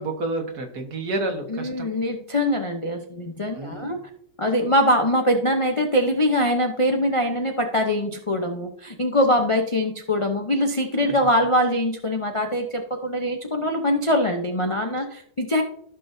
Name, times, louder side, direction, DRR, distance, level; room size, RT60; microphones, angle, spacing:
voice 1, 0.0-1.9 3.6-3.9, right 2 dB, 65° right, 4 dB, 1.9 m, -29 dB
voice 2, 1.5-4.0 4.4-15.6, left 1 dB, 35° left, 2 dB, 0.5 m, -23 dB
14.5 x 6.2 x 2.7 m, 0.67 s
omnidirectional pair, 1.8 m